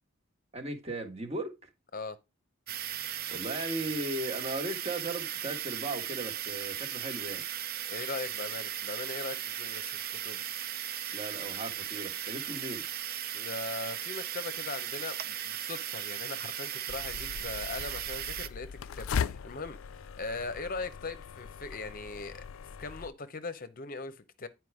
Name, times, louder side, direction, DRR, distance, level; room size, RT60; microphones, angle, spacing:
voice 1, 0.5-1.7 3.3-7.4 11.1-12.8, right 1 dB, 30° right, 1.5 m, -37 dB
sound 1, 2.7-18.5, right 11 dB, 50° right, 0.5 m, -37 dB
voice 2, 7.9-10.4 13.3-24.5, left 3 dB, 45° left, 0.7 m, -40 dB
sound 2, 16.9-23.1, left 7 dB, 90° left, 0.4 m, -39 dB
9.5 x 4.7 x 4.8 m
head